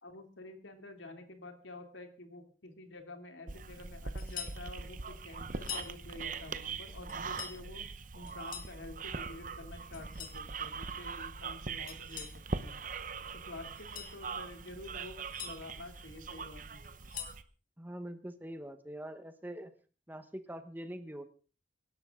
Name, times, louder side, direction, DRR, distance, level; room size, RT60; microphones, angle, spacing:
voice 1, 0.0-7.9 8.1-12.3 12.6-12.8 13.5-16.8, left 2 dB, 85° left, 6 dB, 2.8 m, -49 dB
sound 1, 3.5-17.4, right 4 dB, 45° right, 0.9 m, -42 dB
sound 2, 4.2-4.6 5.5-5.9 7.1-7.6 8.3-8.8 9.9-10.4 11.9-12.4 13.7-14.2 15.0-15.5 16.8-17.4, left 9 dB, 45° left, 2.1 m, -44 dB
voice 2, 17.8-19.7 20.1-21.2, right 1 dB, 10° right, 9 dB, 1.2 m, -44 dB
24.0 x 12.0 x 3.8 m, 0.36 s
head